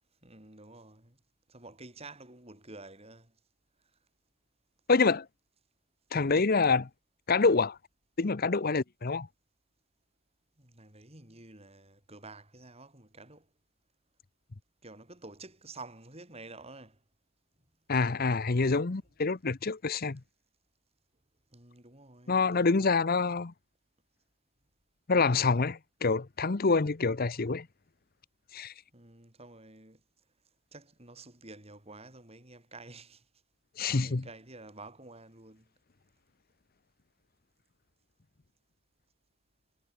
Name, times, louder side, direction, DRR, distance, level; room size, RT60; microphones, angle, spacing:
voice 1, 0.2-1.2 1.5-3.3 10.6-13.5 14.8-17.0 21.5-22.9 28.9-30.0 30.7-33.2 33.8-35.7, right 2 dB, 30° right, 5.4 m, -50 dB
voice 2, 4.9-5.3 6.1-6.9 7.3-7.8 8.2-9.3 17.9-20.2 22.3-23.5 25.1-27.7 28.5-28.7 33.8-34.2, left 4 dB, 45° left, 0.7 m, -26 dB
head